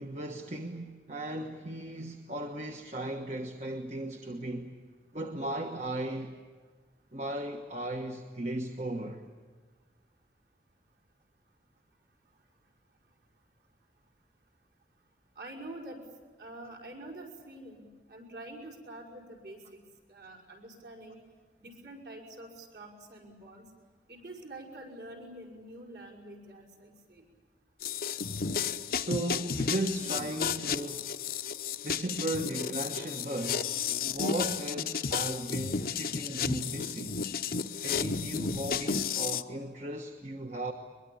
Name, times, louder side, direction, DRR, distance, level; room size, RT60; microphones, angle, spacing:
voice 1, 0.0-4.8 5.1-6.4 7.1-9.2 28.9-31.2 31.8-33.8 34.1-37.2 37.8-40.7, right 1 dB, 40° right, 1.3 m, -36 dB
voice 2, 15.4-16.0 16.4-19.8 20.1-21.2 21.6-23.7 24.1-27.3, right 1 dB, 60° right, 5.6 m, -46 dB
sound 1, 27.8-39.4, left 6 dB, 55° left, 0.8 m, -33 dB
22.5 x 22.5 x 8.7 m
head